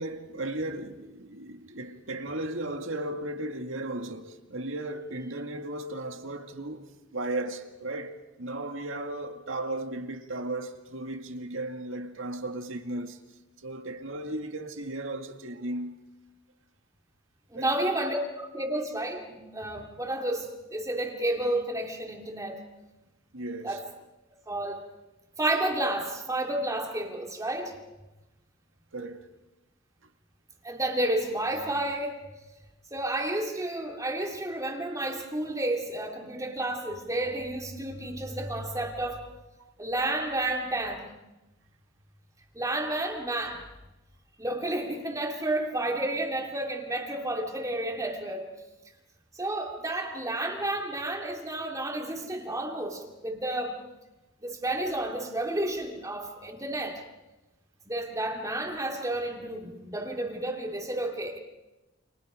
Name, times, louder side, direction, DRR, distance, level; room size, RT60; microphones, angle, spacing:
voice 1, 0.0-13.2 13.6-16.0 17.5-17.7 23.3-23.8 28.9-29.3 39.6-39.7, right 1 dB, 70° right, 2.2 m, -35 dB
voice 2, 17.5-22.6 23.6-23.8 24.5-24.8 25.4-27.7 30.6-32.2 32.9-39.2 39.8-41.1 42.5-43.6 44.4-48.5 49.3-53.8 54.4-57.0 57.9-61.4, right 1 dB, 15° right, 2.8 m, -31 dB
30.0 x 28.0 x 5.1 m
head